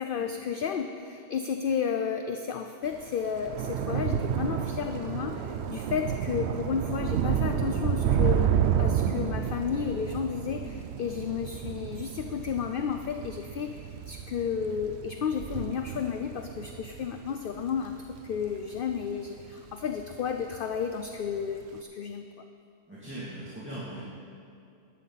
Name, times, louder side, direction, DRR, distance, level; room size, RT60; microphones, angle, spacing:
voice 1, 0.0-8.5 8.8-22.3, left 7 dB, 55° left, 6 dB, 0.6 m, -32 dB
Thunder / Rain, 2.9-19.5 19.9-20.3 20.6-20.8, right 9 dB, 65° right, 0.8 m, -30 dB
voice 2, 22.9-24.0, right 1 dB, 10° right, -10 dB, 2.5 m, -39 dB
16.0 x 11.0 x 4.1 m, 2.4 s
omnidirectional pair, 1.3 m